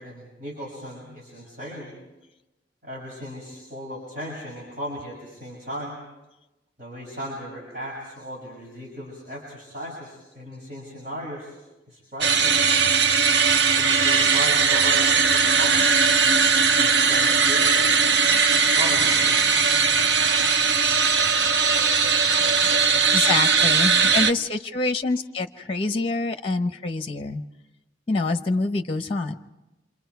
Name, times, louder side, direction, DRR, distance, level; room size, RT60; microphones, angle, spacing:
voice 1, 0.0-1.9 2.8-6.0 6.8-11.6 11.9-12.7 13.7-15.9 16.7-17.9 18.6-19.4, equal, 45° right, -5 dB, 6.5 m, -36 dB
sound 1, 12.2-24.3, right 5 dB, 65° right, 0.7 m, -19 dB
voice 2, 23.1-27.4 28.1-29.3, left 3 dB, 30° left, 7 dB, 0.9 m, -26 dB
28.0 x 26.0 x 4.7 m, 1.0 s
head